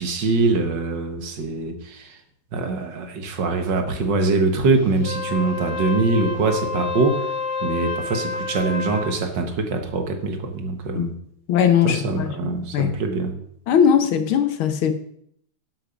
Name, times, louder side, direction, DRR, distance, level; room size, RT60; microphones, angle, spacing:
voice 1, 0.0-2.2 2.5-7.3 7.6-11.1 11.8-13.3, right 3 dB, 65° right, 5 dB, 1.9 m, -23 dB
Wind instrument woodwind instrument, 4.9-9.2, left 4 dB, 65° left, 1.6 m, -29 dB
voice 2, 11.5-13.0 13.7-14.9, left 8 dB, 90° left, 9 dB, 1.9 m, -20 dB
11.5 x 7.7 x 5.2 m, 0.68 s
omnidirectional pair, 2.2 m